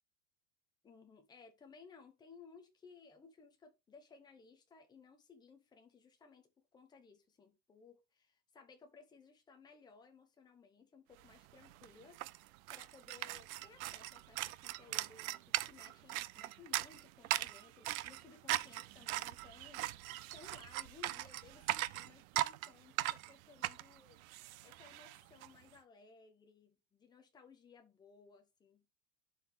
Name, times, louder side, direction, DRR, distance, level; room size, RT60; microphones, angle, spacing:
voice 1, 0.8-20.1 20.3-24.2 24.6-28.8, left 5 dB, 10° left, 0.8 m, -60 dB
sound 1, 11.3-11.4 11.6-25.5, right 16 dB, 60° right, 0.5 m, -40 dB
11.5 x 4.7 x 3.5 m
supercardioid pair, 175°, 50 cm